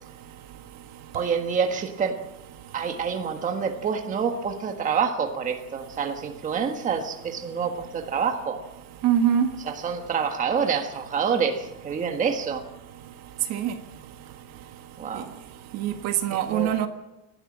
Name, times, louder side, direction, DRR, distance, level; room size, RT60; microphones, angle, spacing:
voice 1, 1.1-2.2 2.7-8.6 9.6-12.7 15.0-15.3 16.3-16.7, right 6 dB, 20° right, 4 dB, 1.5 m, -27 dB
voice 2, 9.0-9.5 13.5-13.7 15.7-16.9, right 9 dB, 40° right, 7 dB, 1.6 m, -23 dB
29.0 x 12.5 x 7.4 m, 1.0 s
cardioid pair, 160°, 39 cm